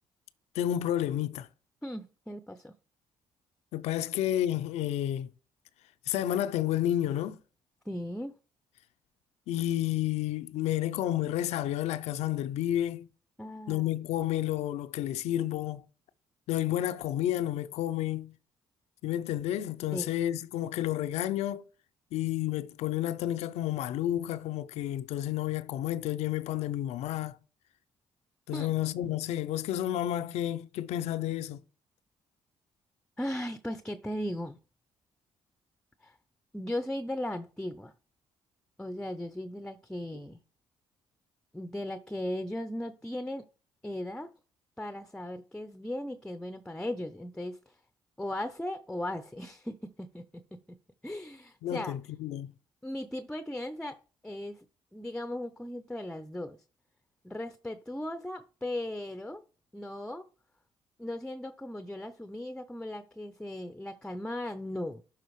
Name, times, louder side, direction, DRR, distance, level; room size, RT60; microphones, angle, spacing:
voice 1, 0.6-1.5 3.7-5.3 6.1-7.4 9.5-13.1 13.7-15.8 16.5-18.3 19.0-21.6 22.1-27.4 28.5-31.6 51.6-52.5, left 12 dB, 80° left, 0.5 m, -30 dB
voice 2, 1.8-2.7 7.9-8.3 13.4-13.8 19.9-20.2 28.5-28.7 33.2-34.6 36.0-36.2 36.5-37.9 38.8-40.4 41.5-43.5 43.8-44.3 44.8-47.7 48.2-50.2 51.0-51.9 52.8-54.0 54.2-54.7 54.9-56.6 57.2-59.4 59.7-60.2 61.0-65.0, left 1 dB, 5° left, 0.6 m, -37 dB
11.5 x 4.0 x 3.1 m
supercardioid pair, 65°, 11 cm